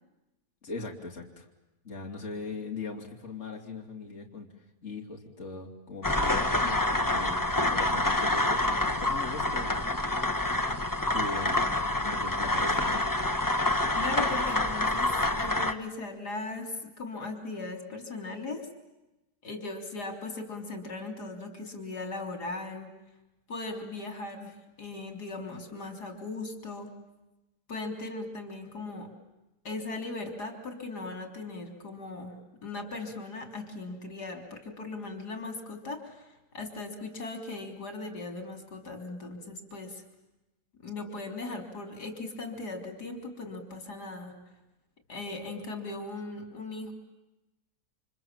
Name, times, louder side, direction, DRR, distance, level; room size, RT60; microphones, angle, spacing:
voice 1, 0.6-1.5 1.8-4.5 4.8-7.4 7.7-9.8 11.0-13.1, left 3 dB, 45° left, 1 dB, 3.4 m, -40 dB
sound 1, 6.0-15.7, left 1 dB, 15° left, 1.2 m, -27 dB
voice 2, 13.9-18.7 19.4-22.9 23.5-26.9 27.7-29.1 29.6-40.0 40.8-44.4 45.1-46.9, left 3 dB, 80° left, 5 dB, 4.1 m, -38 dB
29.5 x 26.5 x 7.5 m, 0.99 s
omnidirectional pair, 1.7 m